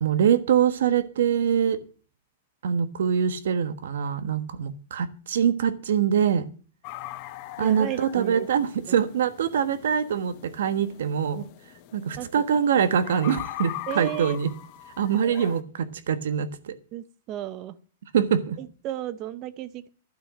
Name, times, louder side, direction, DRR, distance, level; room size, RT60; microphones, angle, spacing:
voice 1, 0.0-1.8 2.6-6.4 7.6-11.4 11.9-14.5 15.0-16.7 18.1-18.6, right 8 dB, 75° right, 1.3 m, -24 dB
sound 1, 6.8-15.6, left 16 dB, 35° left, 0.9 m, -41 dB
voice 2, 7.6-8.5 8.9-9.0 12.2-12.3 13.9-14.4 16.9-17.8 18.6-19.9, right 13 dB, 25° right, 0.7 m, -34 dB
12.0 x 6.3 x 7.5 m
supercardioid pair, 175°, 0 cm